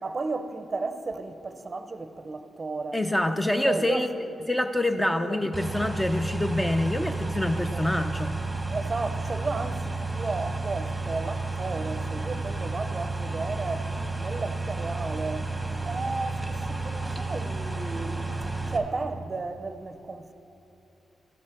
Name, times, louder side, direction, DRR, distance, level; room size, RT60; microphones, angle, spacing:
voice 1, 0.0-3.0 3.3-4.1 4.9-5.4 7.6-7.8 8.7-18.3 18.7-20.3, right 3 dB, 35° right, 0.6 m, -34 dB
voice 2, 2.9-4.2 4.5-8.4, left 1 dB, 10° left, 0.5 m, -26 dB
sound 1, 5.5-18.8, right 3 dB, 10° right, 1.0 m, -32 dB
13.5 x 5.5 x 6.6 m
cardioid pair, 85°, 0 cm